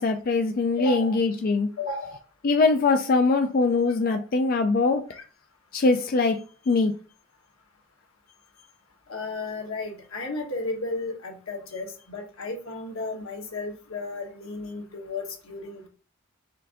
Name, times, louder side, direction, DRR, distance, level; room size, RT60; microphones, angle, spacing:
voice 1, 0.0-1.7 2.4-5.0 5.7-6.4 6.7-6.9, left 3 dB, 45° left, 5 dB, 0.4 m, -22 dB
voice 2, 0.8-1.2 1.8-2.2 4.1-4.2 5.1-5.2 9.1-15.9, left 3 dB, 85° left, 1 dB, 1.2 m, -34 dB
4.5 x 2.5 x 3.6 m, 0.37 s
head